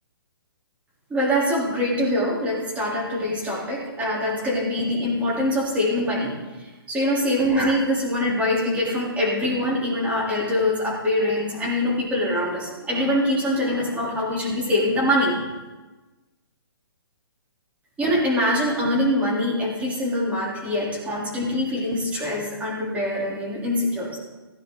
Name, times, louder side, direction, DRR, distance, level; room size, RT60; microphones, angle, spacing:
voice 1, 1.1-6.4 6.9-15.4 18.0-24.2, left 1 dB, 10° right, -5 dB, 3.6 m, -24 dB
16.5 x 9.8 x 4.0 m, 1.2 s
hypercardioid pair, 145°, 13 cm